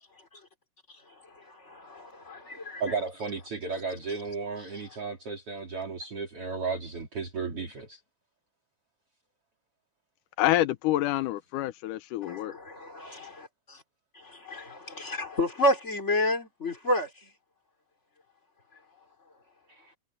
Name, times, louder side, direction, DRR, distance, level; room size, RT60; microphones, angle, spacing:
voice 1, 0.9-3.0 4.6-5.0 12.2-13.3 14.1-17.2, left 1 dB, 20° left, 4.1 m, -31 dB
voice 2, 2.8-8.0 19.7-19.8, right 4 dB, 45° right, 3.9 m, -34 dB
voice 3, 10.4-12.5, left 15 dB, 85° left, 2.3 m, -27 dB
omnidirectional pair, 3.6 m